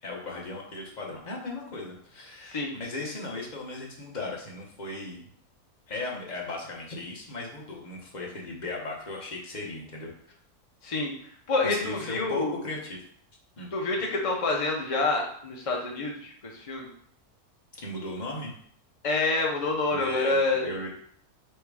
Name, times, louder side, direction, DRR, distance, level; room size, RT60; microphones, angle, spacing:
voice 1, 0.0-5.3 5.9-10.3 11.6-13.0 13.6-13.7 17.8-18.5 19.9-20.9, left 2 dB, 35° left, -1 dB, 0.9 m, -37 dB
voice 2, 11.5-12.5 13.7-16.9 19.0-20.7, left 3 dB, 55° left, -1 dB, 0.3 m, -27 dB
3.4 x 3.3 x 4.7 m, 0.62 s
omnidirectional pair, 1.6 m